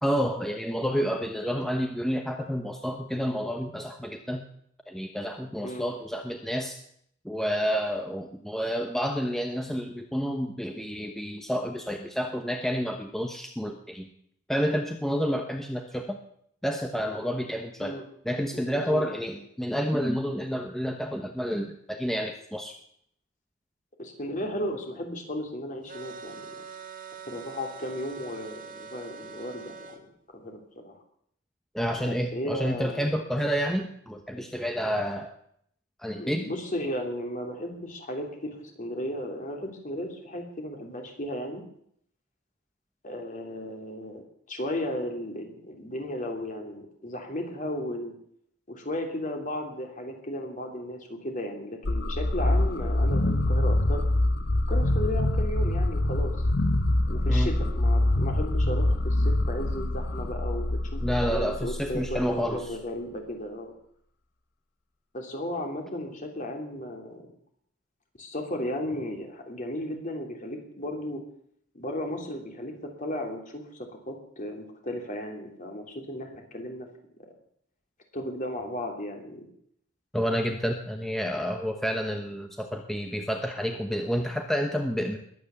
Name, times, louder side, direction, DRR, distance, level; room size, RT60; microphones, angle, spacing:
voice 1, 0.0-4.5 4.9-6.8 7.2-14.1 14.5-16.2 16.6-17.9 18.2-22.7 31.7-35.3 36.0-36.4 57.3-57.5 61.0-62.6 80.1-85.2, equal, ahead, 4 dB, 1.0 m, -29 dB
voice 2, 18.5-19.0 24.0-26.6 27.3-30.0 30.3-31.0 32.0-33.1 34.4-34.5 36.2-41.6 43.0-48.1 48.7-54.0 54.7-56.3 57.1-61.0 61.3-63.7 65.1-67.3 68.2-71.2 71.7-76.9 77.2-77.3 78.1-79.5, left 1 dB, 40° left, 3 dB, 3.1 m, -35 dB
sound 1, 25.9-30.0, right 5 dB, 45° right, 2.0 m, -43 dB
sound 2, 51.8-62.7, left 1 dB, 55° left, 1.0 m, -25 dB
21.0 x 9.3 x 7.0 m, 0.68 s
head